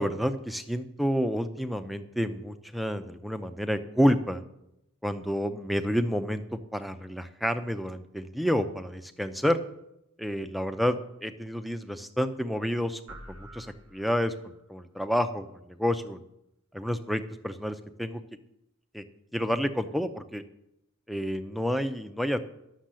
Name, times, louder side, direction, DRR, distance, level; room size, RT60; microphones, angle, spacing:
voice 1, 0.0-4.4 5.0-9.6 10.2-13.0 13.3-16.2 16.7-18.2 18.9-19.0 19.3-20.4 21.1-22.4, equal, ahead, 8 dB, 0.6 m, -29 dB
sound 1, 13.1-14.7, right 1 dB, 85° right, 1.0 m, -48 dB
11.5 x 6.5 x 7.6 m, 0.83 s
head